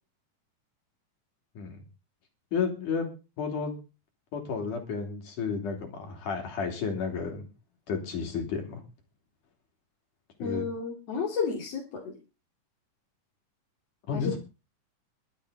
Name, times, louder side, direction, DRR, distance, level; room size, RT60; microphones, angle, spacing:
voice 1, 2.5-3.1 3.4-3.8 4.3-7.5 7.9-8.8 10.4-10.6 14.1-14.4, left 5 dB, 70° left, 3 dB, 4.6 m, -32 dB
voice 2, 10.4-12.2 14.1-14.4, left 5 dB, 50° left, -1 dB, 3.5 m, -32 dB
23.0 x 8.5 x 4.0 m, 0.32 s
omnidirectional pair, 3.8 m